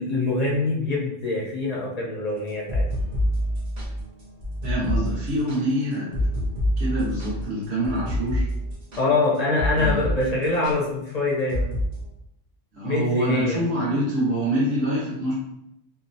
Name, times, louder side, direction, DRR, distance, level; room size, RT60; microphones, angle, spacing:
voice 1, 0.0-2.9 9.0-11.7 12.8-13.6, left 2 dB, 55° left, -4 dB, 0.5 m, -24 dB
sound 1, 2.5-10.2 10.4-10.7 11.5-11.9, equal, 45° right, 0.7 m, -27 dB
voice 2, 4.6-8.5 9.7-10.0 12.7-15.3, right 1 dB, 65° right, -6 dB, 1.3 m, -26 dB
2.9 x 2.0 x 2.6 m, 0.80 s
omnidirectional pair, 1.2 m